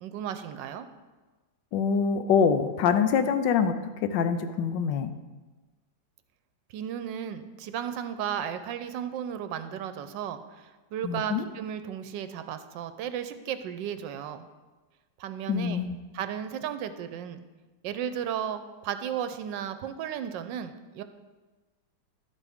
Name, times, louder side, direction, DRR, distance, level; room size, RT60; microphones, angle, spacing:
voice 1, 0.0-0.9 6.7-14.5 15.2-15.8 16.1-17.4 17.8-21.0, right 9 dB, 80° right, 10 dB, 1.3 m, -34 dB
voice 2, 1.7-3.7 4.1-5.1 11.0-11.4 15.5-16.0, left 6 dB, 75° left, 10 dB, 1.3 m, -25 dB
12.0 x 8.3 x 3.5 m, 1.2 s
omnidirectional pair, 2.0 m